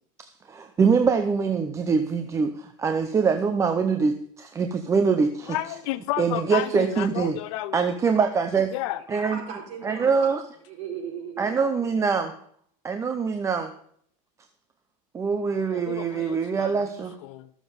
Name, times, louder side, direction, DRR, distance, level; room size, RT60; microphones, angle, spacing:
voice 1, 0.2-5.6 6.2-7.4 7.7-8.7 9.1-9.4 9.8-10.4 11.4-12.3 12.8-13.7 15.1-17.2, right 5 dB, 15° right, 7 dB, 0.6 m, -24 dB
voice 2, 5.5-7.9 8.7-9.0 15.7-17.5, left 15 dB, 65° left, 12 dB, 0.8 m, -32 dB
voice 3, 6.4-7.0 9.1-10.1 10.7-11.6, right 6 dB, 40° right, -1 dB, 4.6 m, -38 dB
14.0 x 7.2 x 5.4 m, 0.64 s
supercardioid pair, 150°, 17 cm